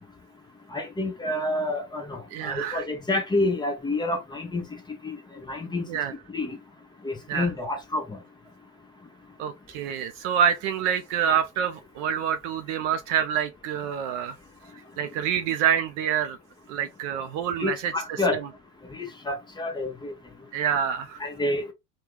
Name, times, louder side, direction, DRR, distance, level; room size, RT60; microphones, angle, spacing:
voice 1, 0.7-4.6 5.0-5.2 5.5-5.8 6.3-6.6 7.0-8.2 17.6-18.4 18.9-20.1 21.2-21.7, left 2 dB, 10° left, 0.8 m, -28 dB
voice 2, 2.3-2.8 5.9-6.1 7.3-7.5 9.4-14.4 15.0-16.4 16.7-18.2 20.5-21.2, right 8 dB, 45° right, 0.5 m, -27 dB
3.0 x 2.3 x 3.5 m
hypercardioid pair, 100°, 50 cm